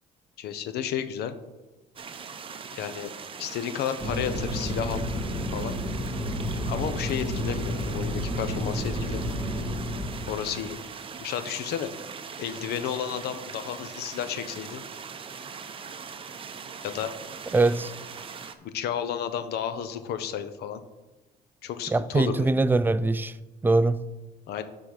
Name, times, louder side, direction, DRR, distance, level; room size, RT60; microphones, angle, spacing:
voice 1, 0.4-1.3 2.7-3.1 3.4-5.1 5.5-5.8 6.7-9.4 10.3-10.8 11.2-11.9 12.4-14.8 16.8-17.1 18.6-20.8 21.6-22.5 24.5-24.6, left 9 dB, 70° left, 0.8 m, -32 dB
sound 1, 2.0-18.5, right 6 dB, 30° right, 0.7 m, -41 dB
Fixed-wing aircraft airplane, 4.0-10.7, equal, 10° left, 1.9 m, -31 dB
voice 2, 17.5-17.9 21.9-23.4 23.6-24.0, right 2 dB, 10° right, 0.3 m, -22 dB
12.0 x 4.0 x 5.0 m
cardioid pair, 110°, 17 cm